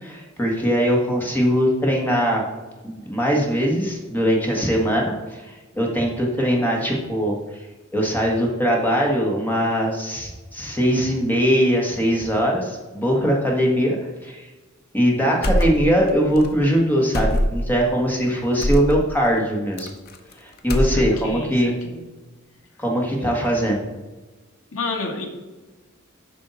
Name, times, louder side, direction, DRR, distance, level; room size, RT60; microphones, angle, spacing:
voice 1, 0.0-2.4 2.8-7.4 7.9-14.0 14.2-14.5 14.9-19.9 20.4-21.8 22.8-23.8, equal, 10° left, -1 dB, 1.4 m, -21 dB
sound 1, 15.4-16.1 16.3-16.5 17.1-17.8 18.6-18.9 19.8-20.3 20.6-21.3, left 1 dB, 45° left, 0.7 m, -22 dB
voice 2, 20.7-22.0 24.7-25.2, left 3 dB, 70° left, 1 dB, 1.7 m, -31 dB
8.2 x 5.6 x 4.1 m, 1.2 s
head